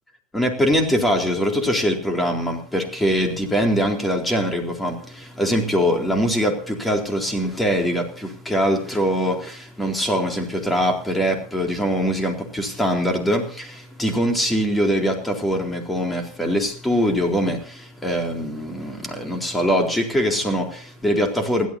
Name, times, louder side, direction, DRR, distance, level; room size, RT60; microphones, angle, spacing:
voice 1, 0.3-21.7, equal, 5° left, 4 dB, 3.9 m, -22 dB
28.0 x 13.0 x 2.8 m, 0.41 s
figure-of-eight pair, 90°, 0 cm